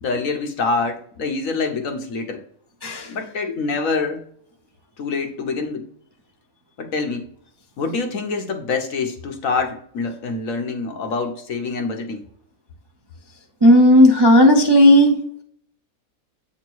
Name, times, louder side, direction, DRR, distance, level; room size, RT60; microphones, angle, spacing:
voice 1, 0.0-2.4 3.1-4.2 5.0-5.8 6.8-7.3 7.8-12.2, left 4 dB, 70° left, 5 dB, 1.3 m, -25 dB
voice 2, 2.8-3.1 13.6-15.2, equal, 30° right, 1 dB, 0.5 m, -12 dB
8.1 x 3.6 x 4.6 m, 0.63 s
omnidirectional pair, 1.5 m